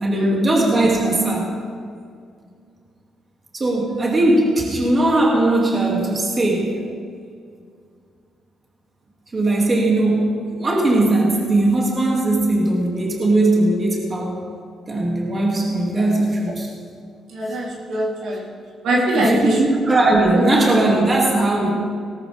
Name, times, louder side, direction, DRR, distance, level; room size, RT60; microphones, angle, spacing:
voice 1, 0.0-1.5 3.5-6.8 9.3-14.4 14.9-16.7 18.2-18.3 19.1-21.7, right 2 dB, 30° right, -2 dB, 2.7 m, -19 dB
voice 2, 17.3-18.4 18.8-19.6 20.3-20.4, right 1 dB, 75° right, -4 dB, 3.7 m, -22 dB
18.5 x 13.5 x 3.6 m, 2.2 s
cardioid pair, 90°, 0 cm